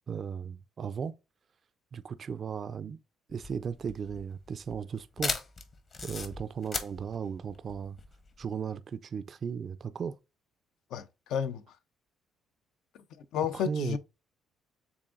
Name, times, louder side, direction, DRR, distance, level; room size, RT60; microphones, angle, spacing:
voice 1, 0.1-1.1 1.9-3.0 3.3-5.4 6.0-8.0 8.4-10.2 13.5-14.0, right 6 dB, 45° right, 0.3 m, -36 dB
sound 1, 3.3-8.5, left 4 dB, 40° left, 0.9 m, -37 dB
voice 2, 10.9-11.6 13.3-14.0, left 8 dB, 80° left, 0.5 m, -31 dB
7.0 x 2.5 x 2.5 m
cardioid pair, 100°, 0 cm